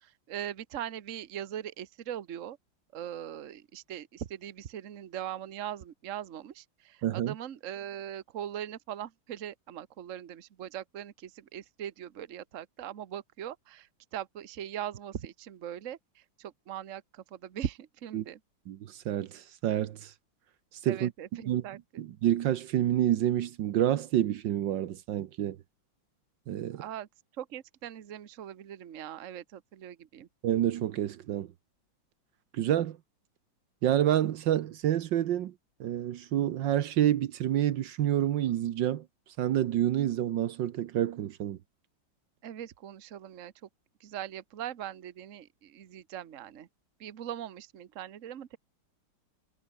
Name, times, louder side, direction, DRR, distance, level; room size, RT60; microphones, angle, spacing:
voice 1, 0.0-2.6 2.9-16.0 16.4-18.4 20.8-22.0 26.7-27.1 27.4-30.3 42.4-43.5 44.0-46.7 47.0-48.6, right 10 dB, 45° right, 1.3 m, -40 dB
voice 2, 7.0-7.3 18.1-18.2 18.7-20.1 20.8-21.1 21.5-21.6 22.0-25.6 26.5-26.8 30.4-31.5 32.5-33.0 33.8-35.5 35.8-39.0 39.4-41.6, right 11 dB, 70° right, 1.5 m, -28 dB
omnidirectional pair, 2.1 m